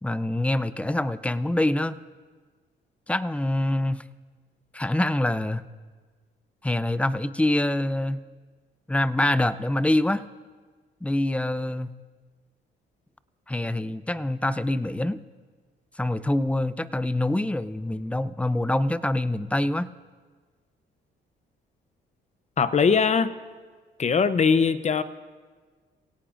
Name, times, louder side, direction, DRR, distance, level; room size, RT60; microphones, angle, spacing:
voice 1, 0.0-2.0 3.1-4.0 4.7-5.6 6.6-8.2 8.9-10.2 11.0-11.9 13.5-15.2 16.0-19.9, left 1 dB, 5° left, 15 dB, 0.5 m, -25 dB
voice 2, 22.6-23.3 24.0-25.0, left 5 dB, 35° left, 13 dB, 0.8 m, -21 dB
24.0 x 17.5 x 2.6 m, 1.5 s
cardioid pair, 90°, 20 cm